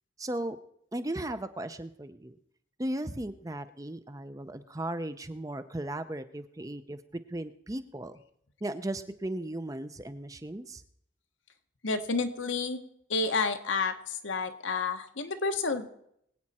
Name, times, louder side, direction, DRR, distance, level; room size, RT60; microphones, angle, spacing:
voice 1, 0.2-0.6 0.9-2.4 2.8-7.0 7.3-8.2 8.6-10.8, right 1 dB, 15° right, 11 dB, 0.5 m, -36 dB
voice 2, 11.8-12.8 13.1-15.9, left 4 dB, 75° left, 7 dB, 1.2 m, -30 dB
23.0 x 8.6 x 4.2 m, 0.73 s
head